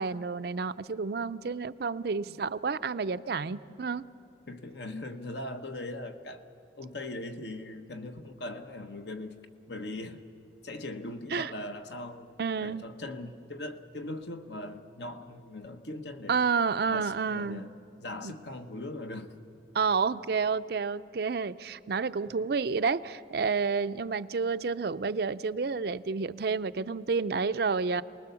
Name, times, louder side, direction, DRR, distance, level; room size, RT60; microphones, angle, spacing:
voice 1, 0.0-4.0 11.3-11.5 12.4-12.9 16.3-17.7 18.2-18.3 19.7-28.0, right 5 dB, 55° right, 13 dB, 0.5 m, -30 dB
voice 2, 4.5-6.5 6.8-9.4 9.7-10.2 10.6-12.3 12.6-16.4 16.8-17.7 18.0-19.3 22.3-22.5, left 1 dB, 70° left, 7 dB, 1.2 m, -40 dB
28.0 x 20.0 x 7.0 m, 2.6 s
head